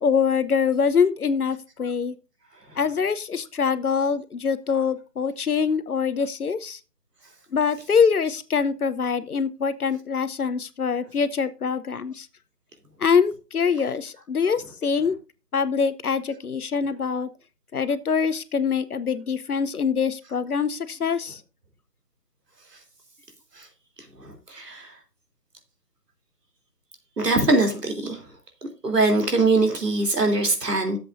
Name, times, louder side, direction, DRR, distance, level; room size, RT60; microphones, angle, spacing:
voice 1, 0.0-2.1 2.8-6.8 7.5-12.3 13.0-15.1 15.5-17.3 17.7-21.4, left 6 dB, 65° left, 0.9 m, -24 dB
voice 2, 24.2-24.9 27.2-28.2 28.8-31.0, right 2 dB, 80° right, 3.2 m, -22 dB
13.0 x 7.7 x 2.6 m
figure-of-eight pair, 170°, 47 cm